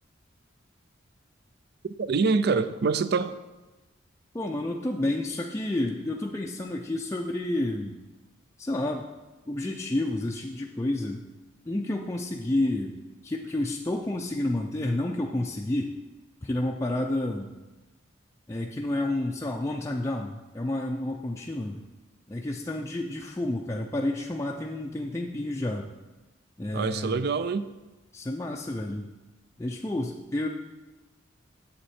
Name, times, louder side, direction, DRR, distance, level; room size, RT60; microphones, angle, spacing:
voice 1, 1.8-3.4 26.7-27.7, right 4 dB, 55° right, 14 dB, 0.4 m, -25 dB
voice 2, 4.3-8.0 8.6-9.1 9.5-11.2 11.7-16.0 16.4-17.5 18.5-21.8 22.3-25.9 26.6-27.1 28.1-29.1 29.6-30.5, left 1 dB, 15° left, 0 dB, 0.4 m, -30 dB
8.0 x 7.9 x 4.3 m, 1.1 s
head